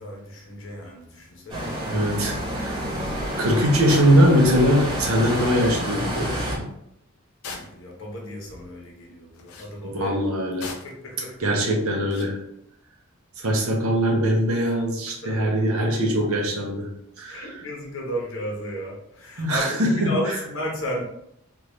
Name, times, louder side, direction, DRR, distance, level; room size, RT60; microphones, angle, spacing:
voice 1, 0.0-1.7 2.9-3.4 7.5-10.2 11.0-11.4 15.2-15.5 15.8-15.9 17.3-21.0, equal, 60° left, -2 dB, 1.0 m, -33 dB
sound 1, 1.5-6.6, equal, 20° right, 1.3 m, -28 dB
voice 2, 1.9-2.8 3.4-6.6 9.8-10.7 11.4-12.4 13.4-16.9 17.2-17.5 19.4-20.3, equal, 75° right, 0 dB, 0.9 m, -22 dB
sound 2, 3.9-4.2 5.3-5.4 5.6-5.8 7.4-7.9 9.3-9.7 10.6-11.0 12.1-12.3, left 4 dB, 80° left, 0.5 m, -38 dB
3.6 x 2.5 x 3.1 m, 0.77 s
head